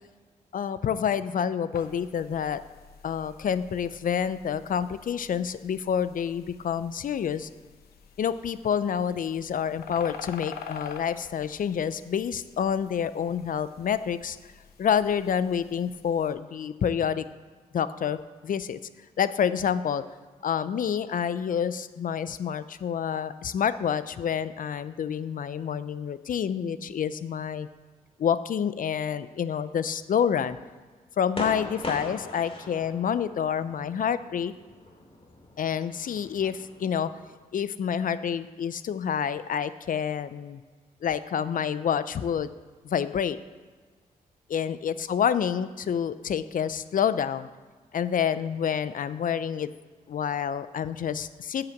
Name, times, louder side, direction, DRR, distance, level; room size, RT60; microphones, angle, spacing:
voice 1, 0.5-2.6 3.0-7.5 8.2-14.4 14.8-17.2 17.7-18.8 19.2-20.0 20.4-27.7 28.2-30.6 31.2-34.5 35.6-37.1 37.5-40.6 41.0-42.5 42.8-43.4 44.5-47.5 47.9-49.7 50.1-51.7, left 8 dB, 60° left, 14 dB, 0.5 m, -28 dB
sound 1, 1.7-16.3, left 6 dB, 90° left, 0.9 m, -47 dB
sound 2, 31.3-37.4, left 2 dB, 35° left, 2.4 m, -41 dB
9.8 x 5.8 x 7.7 m, 1.4 s
cardioid pair, 60°, 16 cm